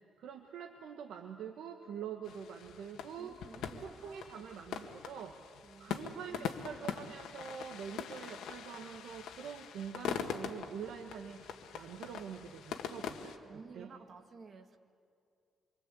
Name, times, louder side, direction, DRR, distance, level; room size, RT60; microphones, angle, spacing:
voice 1, 0.2-3.4 3.7-5.4 5.8-13.3 13.7-13.9, right 7 dB, 75° right, 3 dB, 1.5 m, -45 dB
sound 1, 2.2-13.4, left 8 dB, 80° left, 1.8 m, -43 dB
voice 2, 3.2-4.6 5.6-7.1 13.4-14.8, right 4 dB, 35° right, 5 dB, 1.9 m, -55 dB
26.0 x 24.5 x 8.5 m, 2.4 s
cardioid pair, 150°, 0 cm